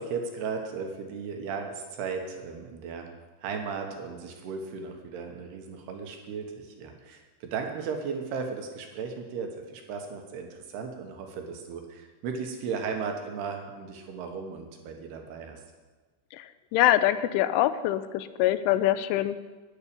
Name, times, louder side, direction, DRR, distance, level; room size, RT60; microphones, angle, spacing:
voice 1, 0.0-3.1 3.4-15.6, right 5 dB, 70° right, 4 dB, 2.9 m, -36 dB
voice 2, 16.3-19.4, left 13 dB, 90° left, 12 dB, 3.1 m, -24 dB
10.0 x 9.9 x 6.9 m, 1.3 s
omnidirectional pair, 5.4 m